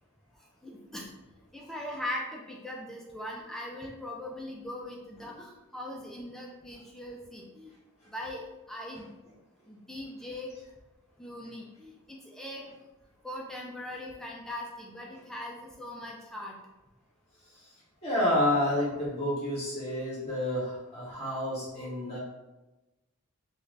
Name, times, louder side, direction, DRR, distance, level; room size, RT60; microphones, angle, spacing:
voice 1, 0.6-1.1 1.5-7.7 8.1-9.1 9.7-10.5 11.2-12.6 13.2-16.5, left 1 dB, ahead, -2 dB, 0.3 m, -40 dB
voice 2, 18.0-22.2, left 1 dB, 25° left, -8 dB, 1.0 m, -29 dB
3.0 x 2.5 x 3.3 m, 1.1 s
head